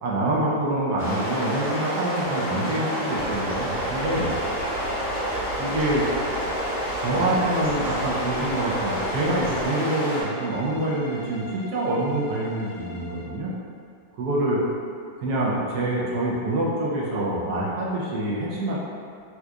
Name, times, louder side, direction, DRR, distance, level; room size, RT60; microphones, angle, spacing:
voice 1, 0.0-4.4 5.6-6.0 7.0-13.5 14.2-14.6 15.2-18.8, right 1 dB, 75° right, -5 dB, 1.1 m, -26 dB
sound 1, 1.0-10.2, equal, ahead, 0.7 m, -28 dB
sound 2, 3.1-9.7, right 2 dB, 90° left, 1.4 m, -41 dB
sound 3, 3.9-13.4, left 1 dB, 70° left, 1.0 m, -42 dB
4.3 x 2.4 x 2.3 m, 2.3 s
omnidirectional pair, 1.8 m